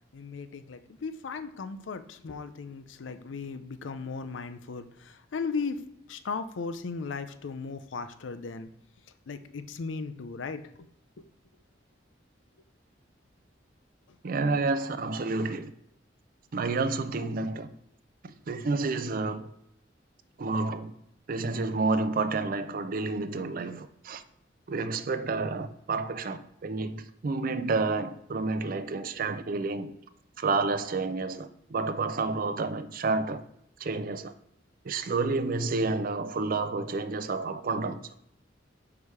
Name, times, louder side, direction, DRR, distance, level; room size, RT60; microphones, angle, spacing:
voice 1, 0.1-5.8 6.1-8.7 9.3-10.6 11.2-11.3, left 4 dB, 85° left, 0.5 m, -36 dB
voice 2, 14.2-15.7 16.5-17.7 18.2-19.5 20.4-20.9 21.3-24.2 24.7-29.9 30.4-33.4 33.8-34.3 34.8-38.0, right 3 dB, 50° right, 0.4 m, -30 dB
4.8 x 4.8 x 5.5 m
head